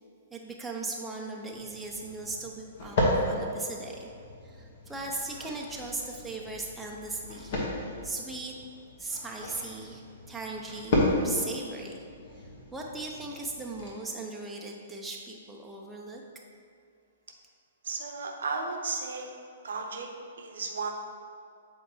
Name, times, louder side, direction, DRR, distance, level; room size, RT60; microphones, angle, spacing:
voice 1, 0.3-4.1 4.4-7.5 8.0-8.6 9.0-10.0 10.3-12.0 12.7-16.2, right 3 dB, 5° right, -1 dB, 0.5 m, -38 dB
sound 1, 1.5-13.9, left 1 dB, 45° left, 1.3 m, -34 dB
voice 2, 17.8-19.3 19.6-20.9, right 4 dB, 60° right, 3 dB, 0.7 m, -34 dB
7.9 x 4.5 x 3.1 m, 2.3 s
figure-of-eight pair, 115°, 0 cm